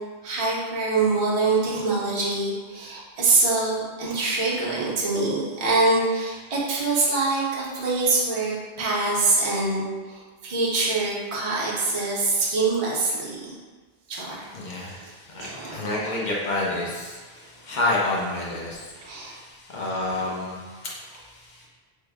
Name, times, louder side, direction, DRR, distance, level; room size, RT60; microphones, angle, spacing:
voice 1, 0.2-9.8 10.4-13.5 14.1-14.4 14.8-14.9 15.4-15.9 19.0-19.4 20.1-20.3, right 3 dB, 40° right, -5 dB, 0.6 m, -24 dB
voice 2, 14.5-20.9, left 2 dB, 50° left, -4 dB, 0.7 m, -29 dB
3.5 x 2.0 x 3.4 m, 1.4 s
omnidirectional pair, 1.1 m